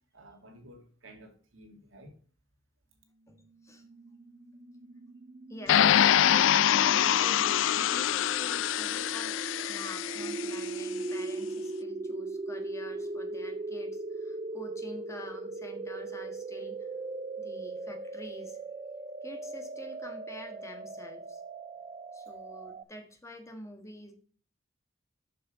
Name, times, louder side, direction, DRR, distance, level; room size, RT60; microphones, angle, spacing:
voice 1, 0.1-2.2, right 1 dB, 85° right, 2.1 m, -53 dB
voice 2, 3.3-3.8 5.5-16.9 17.4-18.6 19.2-21.4 22.1-24.1, left 1 dB, 15° left, 1.5 m, -47 dB
sound 1, 3.7-22.8, right 3 dB, 30° right, 0.5 m, -39 dB
sound 2, 5.7-10.7, left 10 dB, 70° left, 0.3 m, -25 dB
7.3 x 6.3 x 5.1 m
head